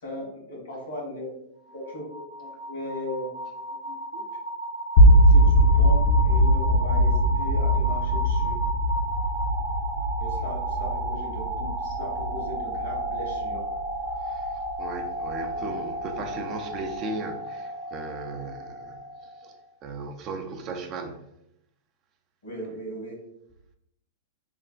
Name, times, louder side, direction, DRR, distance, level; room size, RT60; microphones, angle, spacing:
voice 1, 0.0-1.3 1.7-3.3 3.8-4.2 4.9-8.6 10.2-13.6 22.4-23.1, left 1 dB, 90° left, 1.4 m, -37 dB
sound 1, 1.7-19.6, right 1 dB, 70° right, 0.7 m, -33 dB
sound 2, 5.0-15.0, equal, 45° left, 0.4 m, -21 dB
voice 2, 14.2-14.5 14.8-19.0 19.4-19.5 19.8-21.2, right 3 dB, 35° right, 0.3 m, -36 dB
3.2 x 2.2 x 2.3 m
supercardioid pair, 145°, 0 cm